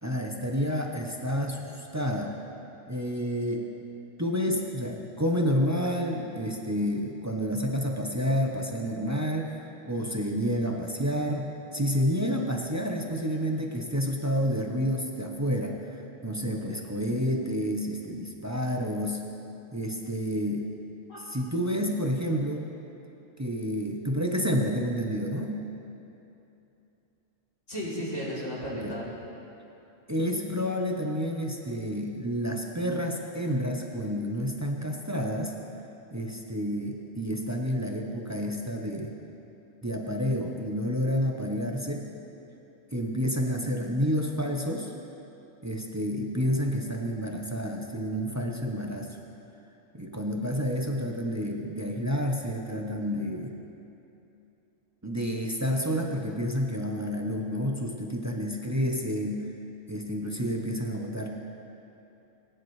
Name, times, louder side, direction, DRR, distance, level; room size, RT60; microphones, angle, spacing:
voice 1, 0.0-2.3 2.9-3.6 4.2-9.5 9.9-15.9 16.2-19.2 19.7-20.6 21.3-22.7 23.4-25.6 28.7-28.9 30.1-35.5 36.1-39.2 39.8-42.1 42.9-44.9 45.6-49.2 49.9-53.6 55.0-59.5 59.9-61.3, equal, 15° right, 1 dB, 0.6 m, -29 dB
voice 2, 16.5-16.9 21.1-21.3 21.6-21.7 27.7-29.1, equal, 75° left, -8 dB, 3.7 m, -35 dB
20.0 x 10.0 x 3.2 m, 2.9 s
omnidirectional pair, 1.3 m